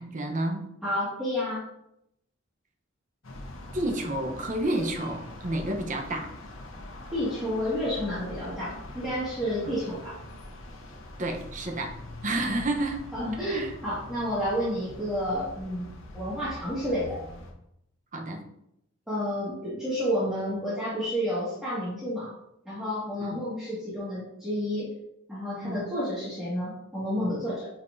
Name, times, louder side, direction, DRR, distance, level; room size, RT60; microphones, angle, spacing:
voice 1, 0.0-0.7 3.7-6.3 9.6-9.7 11.2-13.1 13.5-13.7 18.1-18.5 23.2-23.4 25.6-25.9, right 1 dB, 40° right, 3 dB, 0.9 m, -30 dB
voice 2, 0.8-1.6 7.1-10.2 13.1-15.9 16.1-17.2 19.1-22.3 22.7-24.9 25.3-27.7, equal, ahead, -12 dB, 1.9 m, -30 dB
sound 1, 3.2-17.5, left 1 dB, 85° left, 1.1 m, -43 dB
8.5 x 4.3 x 2.7 m, 0.79 s
head